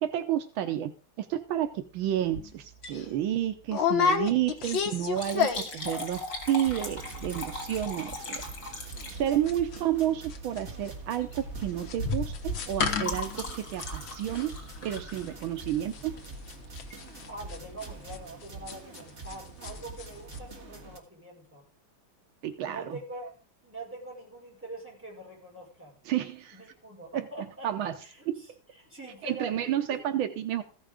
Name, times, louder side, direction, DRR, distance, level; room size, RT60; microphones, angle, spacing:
voice 1, 0.0-0.9 1.2-8.4 9.1-14.6 14.8-16.1 22.4-23.0 26.0-26.6 27.1-27.3 27.6-28.0 28.3-28.4 29.2-30.6, right 11 dB, 80° right, 8 dB, 1.6 m, -30 dB
sound 1, 2.3-2.5 2.9-3.0 3.7-5.9 6.1-6.5 6.8-6.9 7.1-7.5 7.7-19.4 19.6-20.1 20.3-20.4, left 6 dB, 70° left, 2.0 m, -31 dB
Liquid, 2.6-3.1 3.4-3.5 4.4-9.6 10.6-10.8 11.2-11.4 11.7-15.8 16.7-17.0 17.5-17.6 17.8-17.9, left 2 dB, 50° left, 3.1 m, -39 dB
sound 2, 6.7-21.0, right 3 dB, 35° right, 1.9 m, -45 dB
voice 2, 17.3-21.7 22.6-23.3 23.6-25.9 26.5-28.5 28.8-30.0, right 2 dB, 5° right, -3 dB, 5.1 m, -44 dB
15.0 x 6.4 x 5.0 m, 0.37 s
omnidirectional pair, 2.2 m